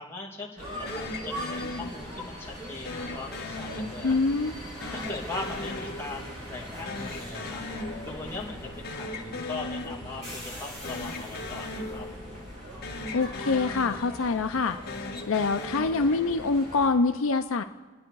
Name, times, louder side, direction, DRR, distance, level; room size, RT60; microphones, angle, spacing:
voice 1, 0.0-4.1 4.9-7.6 8.0-12.1, left 3 dB, 10° left, -3 dB, 2.5 m, -40 dB
sound 1, 0.6-16.9, equal, 35° right, 6.1 m, -40 dB
sound 2, 0.9-2.4 2.8-4.4 4.8-6.6 6.8-8.4 8.7-10.4 10.8-12.6 12.8-14.4 14.8-16.5, left 2 dB, 50° left, 1.5 m, -38 dB
voice 2, 4.0-4.5 13.1-14.8 15.3-17.6, left 4 dB, 65° left, 7 dB, 0.6 m, -25 dB
29.0 x 9.7 x 4.7 m, 1.3 s
head